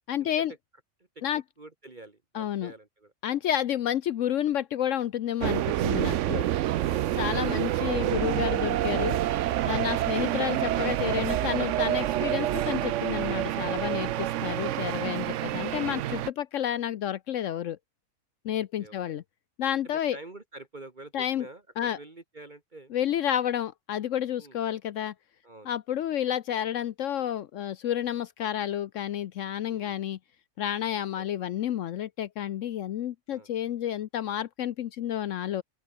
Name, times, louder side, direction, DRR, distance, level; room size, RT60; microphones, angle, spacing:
voice 1, 0.1-0.5 1.2-1.4 2.3-2.7 3.2-6.4 7.2-9.2 9.7-17.8 18.4-19.2 19.6-20.2 21.1-21.5 21.8-22.0 22.9-25.1 25.7-30.2 30.6-35.6, left 10 dB, 70° left, 1.0 m, -30 dB
voice 2, 1.3-3.1 18.6-19.2 19.8-22.9 24.4-24.6 25.4-25.7 29.6-30.1 31.2-31.3 33.3-33.5, right 2 dB, 35° right, 2.1 m, -48 dB
sound 1, 5.4-16.3, right 13 dB, 70° right, 0.9 m, -28 dB
open air
omnidirectional pair, 1.4 m